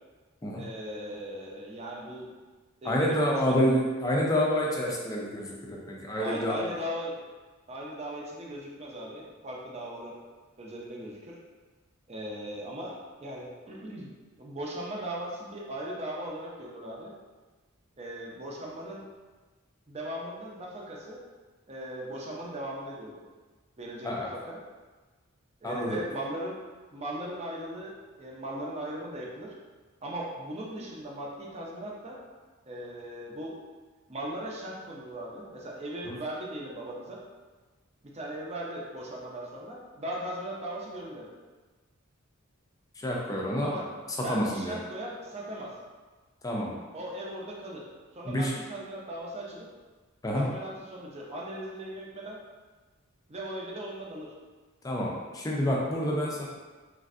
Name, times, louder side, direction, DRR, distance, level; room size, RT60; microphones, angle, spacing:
voice 1, 0.6-2.3 2.8-3.6 6.2-7.2 7.7-10.1 10.6-11.4 12.1-12.9 13.2-14.1 14.4-17.1 18.0-19.0 19.9-21.2 21.7-23.2 23.8-24.6 25.6-26.6 26.9-27.9 28.2-29.5 30.0-32.2 32.7-33.6 34.1-37.2 38.0-41.3 43.6-43.9 44.2-45.7 46.9-47.8 48.1-49.7 50.3-52.4 53.3-54.3, right 1 dB, 30° right, -3 dB, 0.5 m, -38 dB
voice 2, 2.9-6.7 24.0-24.3 25.6-26.0 36.1-36.2 43.0-43.7 44.3-44.7 46.4-46.7 48.3-48.5 50.2-50.4 54.8-56.5, equal, 15° left, -3 dB, 0.4 m, -28 dB
3.1 x 2.5 x 2.5 m, 1.3 s
head